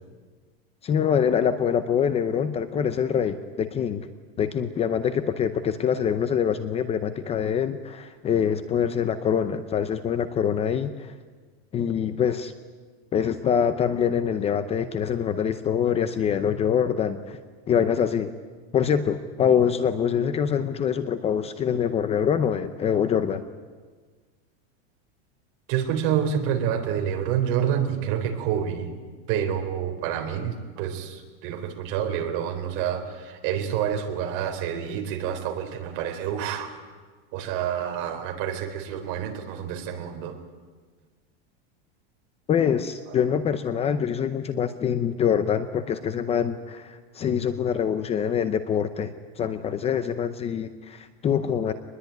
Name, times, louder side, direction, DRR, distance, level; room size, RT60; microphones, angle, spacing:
voice 1, 0.8-4.1 4.4-11.1 11.7-12.5 13.1-17.4 17.7-18.3 18.7-23.4 42.5-51.7, left 8 dB, 20° left, 11 dB, 0.7 m, -25 dB
voice 2, 25.7-28.9 29.3-36.7 37.3-40.4 43.1-43.2, right 9 dB, 45° right, 4 dB, 3.8 m, -28 dB
23.5 x 21.0 x 9.3 m, 1.5 s
supercardioid pair, 160°, 32 cm